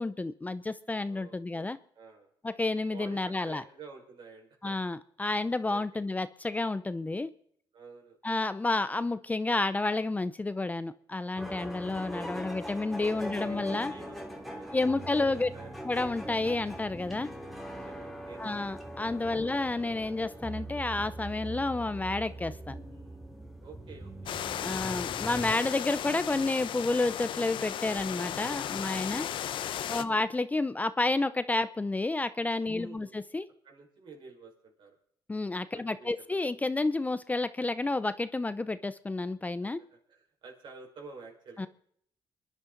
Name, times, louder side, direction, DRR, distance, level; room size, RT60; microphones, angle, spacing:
voice 1, 0.0-1.8 2.4-3.6 4.6-7.3 8.2-13.9 14.7-15.5 15.9-17.3 18.4-22.8 24.6-29.3 29.9-33.5 35.3-39.8 41.6-41.7, left 2 dB, 15° left, 14 dB, 0.6 m, -30 dB
voice 2, 1.1-2.3 2.9-4.8 5.7-6.0 7.7-8.2 11.5-12.4 13.0-15.8 17.4-18.7 19.4-19.6 22.8-24.4 30.0-30.2 32.7-33.2 33.6-35.0 35.7-36.4 39.6-41.7, right 4 dB, 65° right, 1 dB, 5.0 m, -51 dB
sound 1, 11.4-25.6, right 1 dB, ahead, 2.4 m, -41 dB
sound 2, 24.3-30.0, left 10 dB, 70° left, 0.7 m, -35 dB
27.0 x 11.0 x 3.9 m, 0.66 s
cardioid pair, 90°, 9 cm